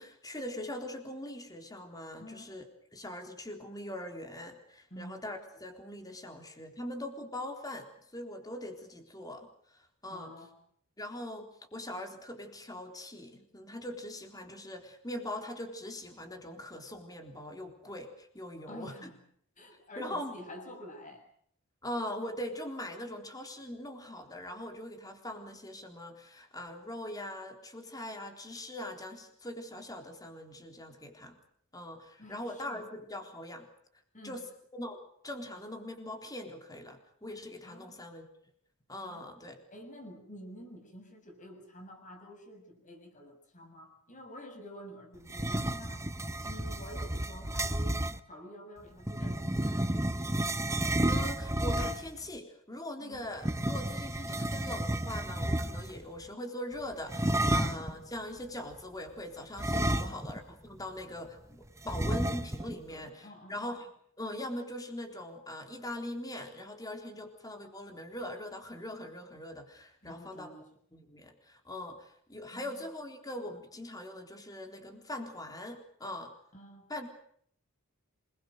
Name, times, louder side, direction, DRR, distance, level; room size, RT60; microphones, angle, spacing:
voice 1, 0.0-2.6 2.9-10.3 11.0-18.9 20.0-20.3 21.8-31.4 31.7-33.7 34.2-34.5 34.7-35.0 35.2-38.3 38.9-39.6 51.1-63.9 64.2-70.5 70.9-76.3 76.9-77.1, left 1 dB, 15° left, 4 dB, 3.7 m, -41 dB
voice 2, 2.2-2.5 4.9-5.2 10.1-10.6 18.7-19.2 19.6-21.2 32.2-32.9 34.1-34.4 37.6-37.9 39.0-39.3 39.7-46.1 46.4-48.0 48.3-49.9 53.0-53.2 57.5-57.7 59.9-60.3 62.9-63.6 70.0-70.7 72.5-72.9 76.5-76.9, equal, 35° left, 4 dB, 6.8 m, -49 dB
sound 1, 45.3-48.2 49.0-52.2 53.4-56.0 57.1-57.9 59.6-60.5 60.8-60.9 61.9-62.8, right 1 dB, 15° right, 1.0 m, -31 dB
27.5 x 21.5 x 6.6 m, 0.64 s
head